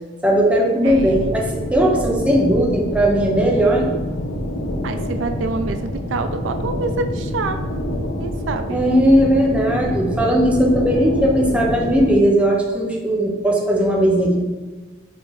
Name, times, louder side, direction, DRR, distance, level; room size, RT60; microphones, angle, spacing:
voice 1, 0.2-4.0 8.7-14.4, equal, 5° right, -1 dB, 0.6 m, -17 dB
sound 1, 0.8-12.1, left 1 dB, 80° left, 0.7 m, -27 dB
voice 2, 0.8-1.2 4.8-7.6 8.2-8.8, right 3 dB, 80° right, 8 dB, 0.4 m, -26 dB
4.5 x 2.8 x 4.0 m, 1.3 s
head